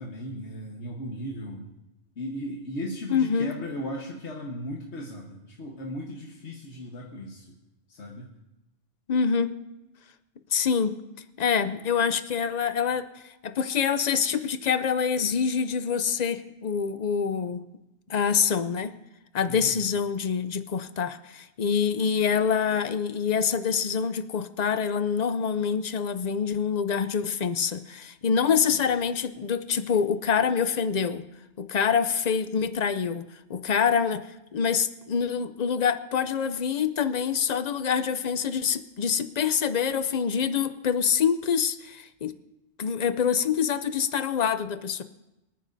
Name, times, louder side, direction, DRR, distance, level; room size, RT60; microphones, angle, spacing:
voice 1, 0.0-1.7 2.2-7.6 7.9-8.3 19.5-19.8 28.7-28.8, equal, 75° left, -2 dB, 1.6 m, -36 dB
voice 2, 3.1-3.5 9.1-9.5 10.5-11.0 11.4-13.1 13.4-17.6 18.1-18.9 19.3-31.2 31.6-34.3 34.5-42.3 42.8-45.0, left 7 dB, 50° left, 12 dB, 0.6 m, -26 dB
24.5 x 9.4 x 2.7 m, 0.95 s
omnidirectional pair, 1.2 m